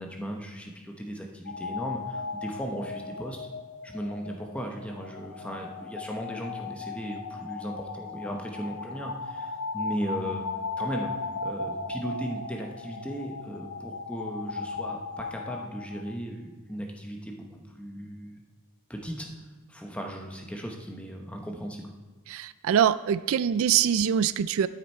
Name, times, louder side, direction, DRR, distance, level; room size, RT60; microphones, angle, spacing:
voice 1, 0.0-3.4 3.8-10.4 10.8-11.1 11.4-18.4 18.9-19.3 19.7-21.9, equal, 5° left, 2 dB, 0.9 m, -37 dB
sound 1, 1.5-16.1, left 4 dB, 75° left, 0.6 m, -37 dB
voice 2, 22.3-24.7, right 8 dB, 70° right, 15 dB, 0.3 m, -24 dB
12.0 x 6.7 x 4.4 m, 1.3 s
head